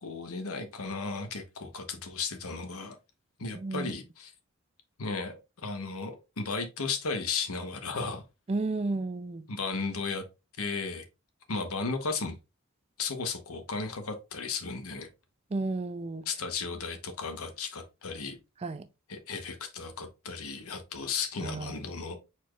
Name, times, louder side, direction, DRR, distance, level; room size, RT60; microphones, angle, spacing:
voice 1, 0.0-3.0 3.4-4.3 5.0-8.2 9.5-10.2 10.6-11.0 11.5-12.3 13.0-15.1 16.3-18.4 19.1-22.2, left 4 dB, 85° left, 1.0 m, -35 dB
voice 2, 3.5-3.9 8.5-9.5 15.5-16.3 18.6-18.9 21.4-21.8, right 2 dB, 30° right, 0.3 m, -32 dB
4.7 x 4.2 x 2.4 m
head